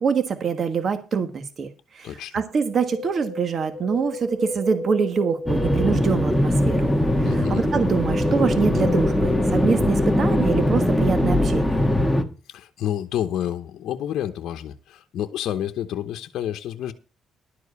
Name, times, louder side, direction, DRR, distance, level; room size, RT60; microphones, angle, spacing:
voice 1, 0.0-6.9 7.2-11.8, right 6 dB, 50° right, 1.3 m, -25 dB
voice 2, 2.0-2.4 7.2-7.6 12.5-16.9, left 11 dB, 80° left, 0.9 m, -29 dB
Wind, 2.6-6.9 7.2-7.3, equal, 80° right, 2.1 m, -34 dB
sound 1, 5.5-12.2, left 1 dB, 5° left, 1.5 m, -21 dB
12.0 x 4.8 x 8.3 m
cardioid pair, 90°, 0 cm